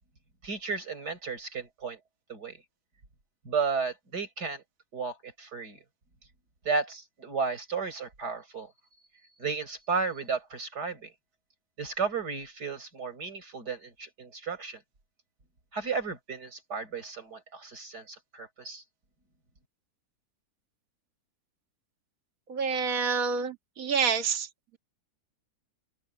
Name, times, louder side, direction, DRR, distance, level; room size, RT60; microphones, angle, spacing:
voice 1, 0.4-2.0 2.3-2.6 3.4-4.6 4.9-5.8 6.6-8.7 9.4-11.1 11.8-14.8 15.7-18.8, right 5 dB, 90° right, 5.9 m, -33 dB
voice 2, 22.5-24.5, right 6 dB, 60° right, 2.1 m, -28 dB
open air
omnidirectional pair, 1.7 m